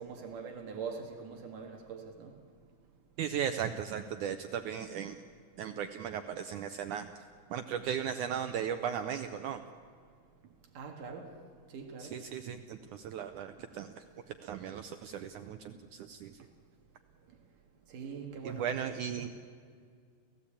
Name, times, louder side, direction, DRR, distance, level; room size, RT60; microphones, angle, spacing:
voice 1, 0.0-2.3 10.8-11.3 11.7-12.1 17.9-19.3, right 5 dB, 60° right, 3.0 m, -43 dB
voice 2, 3.2-5.2 5.6-7.1 7.5-9.6 12.0-14.0 14.4-16.3 18.4-19.3, right 8 dB, 80° right, 1.8 m, -36 dB
30.0 x 15.5 x 8.6 m
omnidirectional pair, 4.5 m